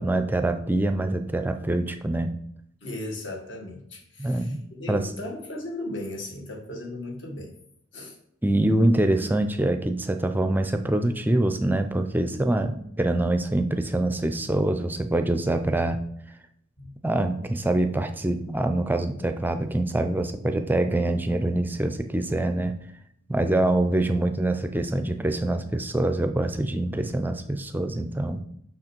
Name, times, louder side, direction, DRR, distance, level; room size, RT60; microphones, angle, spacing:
voice 1, 0.0-2.3 4.2-4.6 4.9-5.1 8.4-16.0 17.0-22.7 23.3-28.4, right 1 dB, 10° right, 8 dB, 0.4 m, -25 dB
voice 2, 2.8-7.5 7.9-8.2 16.8-17.0, left 1 dB, 60° left, 0 dB, 1.7 m, -36 dB
6.3 x 5.9 x 4.5 m, 0.70 s
head